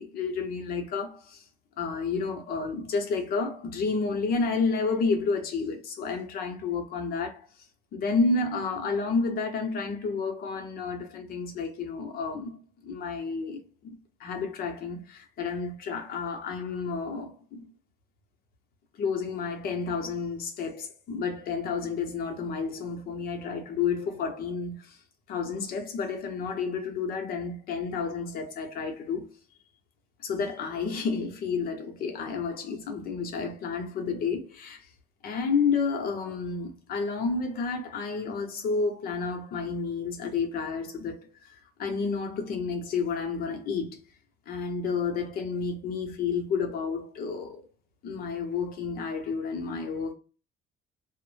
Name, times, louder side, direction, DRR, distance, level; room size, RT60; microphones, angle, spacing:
voice 1, 0.0-1.4 1.8-7.5 7.9-17.7 19.0-25.0 25.3-29.3 30.2-34.8 35.2-44.0 44.5-47.7 48.0-50.1, left 4 dB, 60° left, 0.7 m, -30 dB
2.0 x 2.0 x 3.1 m
cardioid pair, 110°, 17 cm